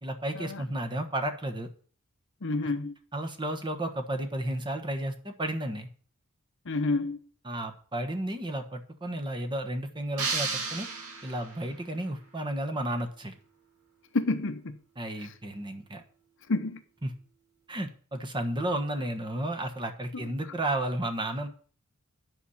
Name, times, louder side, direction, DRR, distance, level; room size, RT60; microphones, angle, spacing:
voice 1, 0.0-1.7 2.6-2.7 3.1-5.9 7.4-10.9 11.2-13.3 15.0-16.0 17.0-17.1 17.7-21.5, right 1 dB, 20° right, 1.3 m, -32 dB
voice 2, 2.4-2.9 6.6-7.2 14.1-14.8 15.2-15.3 16.5-16.8 20.1-20.3, left 3 dB, 60° left, 0.9 m, -29 dB
sound 1, 10.2-11.7, right 4 dB, 85° right, 2.4 m, -33 dB
9.5 x 5.7 x 7.2 m
head